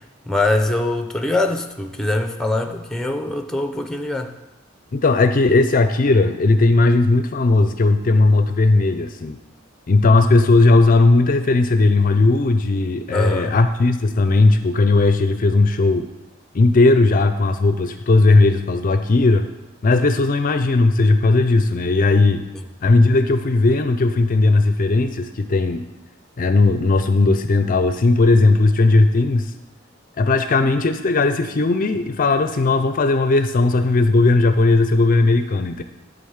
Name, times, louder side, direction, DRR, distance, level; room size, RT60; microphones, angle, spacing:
voice 1, 0.3-4.3 13.1-13.6, left 2 dB, 5° left, 6 dB, 0.6 m, -22 dB
voice 2, 4.9-9.4 9.9-16.1 16.5-19.5 19.8-22.4 22.8-25.8 26.4-29.5 30.2-35.8, left 3 dB, 45° left, 9 dB, 0.5 m, -16 dB
11.0 x 4.0 x 7.2 m, 1.0 s
head